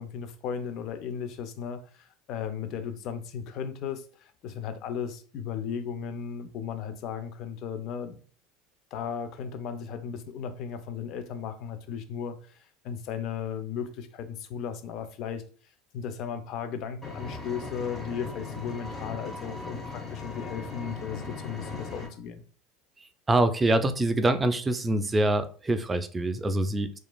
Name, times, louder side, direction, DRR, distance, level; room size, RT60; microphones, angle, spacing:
voice 1, 0.0-8.2 8.9-15.4 15.9-22.4, left 7 dB, 55° left, 0.4 m, -36 dB
Engine, 17.0-22.1, left 3 dB, 20° left, 0.9 m, -38 dB
voice 2, 23.3-27.0, right 1 dB, 20° right, 0.3 m, -25 dB
2.9 x 2.4 x 2.2 m
hypercardioid pair, 90°, 0 cm